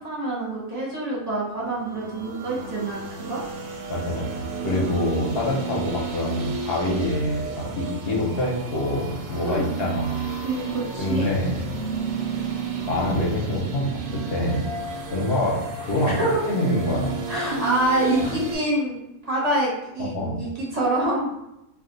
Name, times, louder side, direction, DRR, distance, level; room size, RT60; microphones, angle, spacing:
voice 1, 0.0-3.4 9.4-9.7 10.4-11.3 16.2-16.3 17.3-19.0 19.2-21.3, right 1 dB, 30° right, -6 dB, 0.8 m, -26 dB
sound 1, 1.6-18.6, right 4 dB, 70° right, 0.9 m, -32 dB
voice 2, 3.9-10.3 11.0-11.8 12.4-12.5 12.9-14.7 15.1-16.1 16.5-17.2 18.2-18.3 20.0-20.4, left 1 dB, 50° left, -3 dB, 0.7 m, -26 dB
2.5 x 2.3 x 3.8 m, 0.87 s
omnidirectional pair, 1.7 m